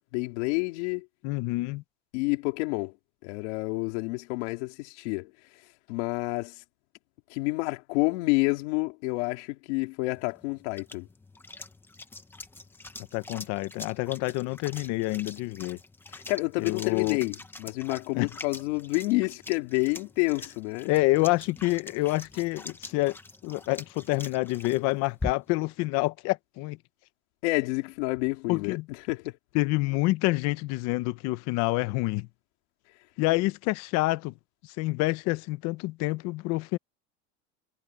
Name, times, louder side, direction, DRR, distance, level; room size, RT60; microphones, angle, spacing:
voice 1, 0.1-1.1 2.1-2.9 3.2-5.3 5.9-6.6 7.3-11.1 16.1-20.9 27.4-28.8 29.1-29.3, left 25 dB, 80° left, 3.6 m, -29 dB
voice 2, 1.2-1.8 13.1-15.8 16.6-17.2 18.1-18.3 20.9-23.2 23.4-26.8 28.5-28.9 29.5-32.3 33.2-34.3 34.8-36.8, left 21 dB, 50° left, 0.8 m, -27 dB
sound 1, 10.2-25.7, left 3 dB, 5° left, 1.0 m, -44 dB
cardioid pair, 165°, 35 cm